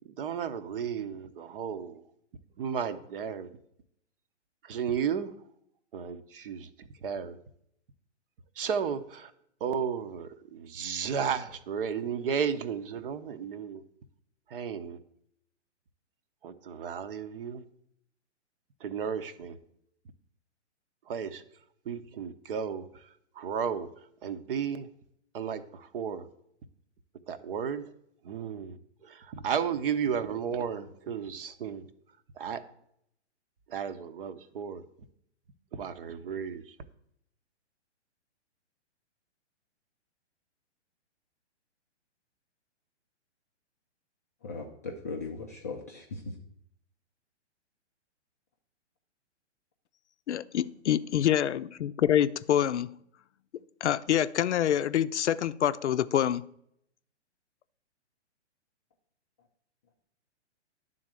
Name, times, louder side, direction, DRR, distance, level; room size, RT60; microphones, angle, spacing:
voice 1, 0.2-2.0 2.6-3.6 4.6-5.3 5.9-6.7 7.0-7.4 8.6-9.3 9.6-13.8 14.5-15.0 16.4-17.6 18.8-19.6 21.1-21.4 21.9-23.1 23.4-23.9 24.2-24.9 25.3-26.2 27.3-27.8 28.2-31.8 32.4-32.6 33.7-34.8 35.7-36.7, right 7 dB, 50° right, 0.8 m, -33 dB
voice 2, 44.4-46.3, left 3 dB, 15° left, 0.3 m, -38 dB
voice 3, 50.3-52.9 53.8-56.5, left 10 dB, 70° left, 0.5 m, -26 dB
10.5 x 3.9 x 7.5 m
hypercardioid pair, 130°, 35 cm